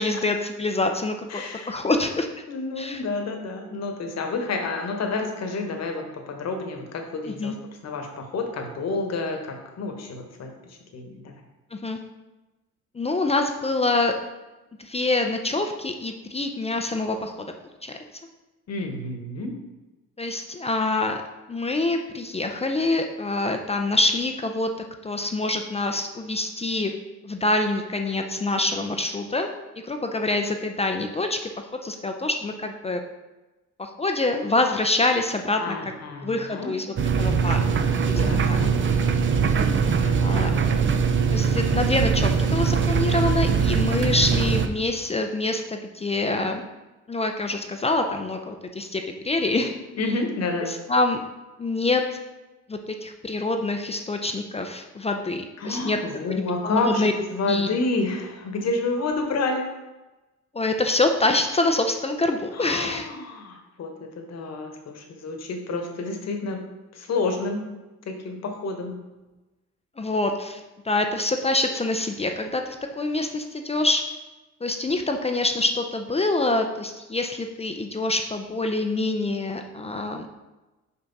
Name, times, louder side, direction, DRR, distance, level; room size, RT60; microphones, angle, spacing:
voice 1, 0.0-2.3 2.8-3.0 7.3-7.6 11.7-12.0 12.9-14.2 14.8-17.3 17.8-18.0 20.2-21.2 21.5-24.7 25.0-26.9 27.2-29.5 29.8-31.4 31.8-33.0 33.8-36.0 36.2-37.6 38.5-38.6 40.2-40.5 41.3-46.6 47.1-49.8 50.7-51.2 51.6-52.0 52.7-56.0 56.3-57.1 57.5-57.7 60.5-63.1 70.0-74.0 74.6-80.3, left 2 dB, 20° left, 4 dB, 0.5 m, -25 dB
voice 2, 1.3-2.0 2.5-7.5 7.8-11.3 18.7-19.6 35.6-36.7 38.1-38.8 40.0-40.4 49.9-50.7 55.6-59.7 62.5-66.6 66.9-67.6 68.1-69.0, left 3 dB, 60° left, 4 dB, 1.2 m, -29 dB
sound 1, 37.0-44.7, right 6 dB, 40° right, 0.6 m, -22 dB
5.7 x 5.2 x 4.0 m, 1.1 s
cardioid pair, 90°, 30 cm